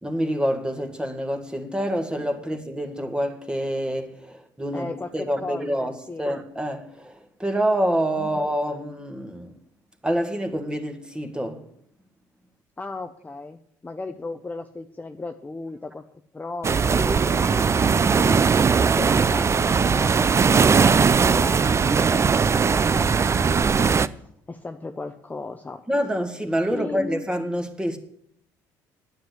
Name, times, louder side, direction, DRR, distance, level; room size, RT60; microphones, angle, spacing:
voice 1, 0.0-5.9 6.2-9.5 10.0-11.6 25.9-28.0, equal, 10° right, 1.7 m, -27 dB
voice 2, 4.7-6.3 8.2-8.3 12.8-16.1 16.3-24.2 24.5-25.8 26.7-27.3, left 3 dB, 20° left, 0.7 m, -36 dB
sound 1, 16.6-24.1, right 5 dB, 30° right, 0.5 m, -19 dB
9.6 x 8.0 x 8.1 m
hypercardioid pair, 65°, 9 cm